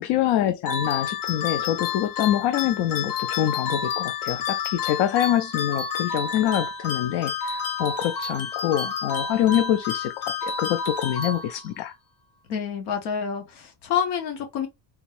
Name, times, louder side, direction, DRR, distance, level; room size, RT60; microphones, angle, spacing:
voice 1, 0.0-12.0, left 11 dB, 65° left, 0.5 m, -25 dB
sound 1, 0.7-11.9, left 6 dB, 45° left, 0.9 m, -30 dB
voice 2, 12.5-14.7, left 7 dB, 85° left, 1.4 m, -28 dB
3.6 x 2.6 x 3.2 m
cardioid pair, 125°, 46 cm